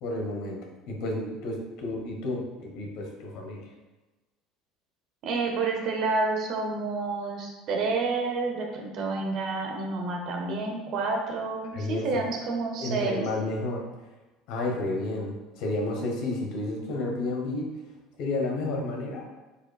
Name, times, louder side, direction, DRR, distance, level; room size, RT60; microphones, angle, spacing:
voice 1, 0.0-0.6 0.9-3.6 11.7-12.3 12.8-13.9 14.5-17.8 18.2-19.2, left 2 dB, 55° left, 0 dB, 1.5 m, -31 dB
voice 2, 5.2-13.2, right 3 dB, 50° right, 1 dB, 1.3 m, -29 dB
8.8 x 5.0 x 2.4 m, 1.2 s
figure-of-eight pair, 65°, 0 cm